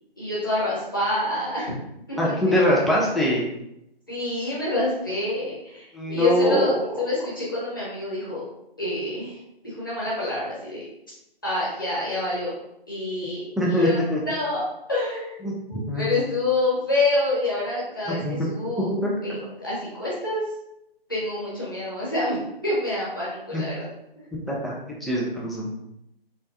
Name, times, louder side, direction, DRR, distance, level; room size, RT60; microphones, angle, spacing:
voice 1, 0.2-1.7 2.1-2.8 4.1-8.4 8.8-10.9 11.4-12.5 12.9-14.6 14.9-18.9 19.2-20.4 21.1-22.4 22.6-23.9 24.2-24.3, left 2 dB, 20° left, -7 dB, 0.9 m, -27 dB
voice 2, 2.2-3.4 5.9-6.8 13.6-14.2 15.4-16.1 18.2-18.4 19.0-19.4 23.5-23.6 24.5-24.7 25.0-25.7, equal, ahead, -5 dB, 0.3 m, -23 dB
3.3 x 3.0 x 2.6 m, 0.82 s
figure-of-eight pair, 175°, 30 cm